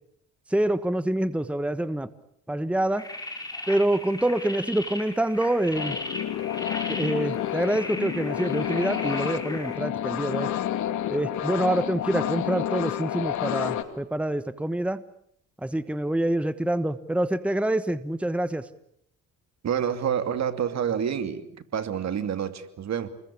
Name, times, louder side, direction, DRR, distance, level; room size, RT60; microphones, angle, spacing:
voice 1, 0.5-2.1 2.5-3.1 3.7-6.0 6.9-10.5 11.1-15.0 15.6-18.7, right 1 dB, 5° right, 13 dB, 1.2 m, -26 dB
sound 1, 3.0-9.8, left 2 dB, 10° left, 6.2 m, -37 dB
sound 2, 5.7-13.8, left 11 dB, 75° left, 2.4 m, -30 dB
voice 2, 19.6-21.5 21.7-23.1, right 8 dB, 60° right, 9 dB, 2.7 m, -28 dB
29.0 x 21.5 x 8.4 m, 0.71 s
cardioid pair, 90°, 30 cm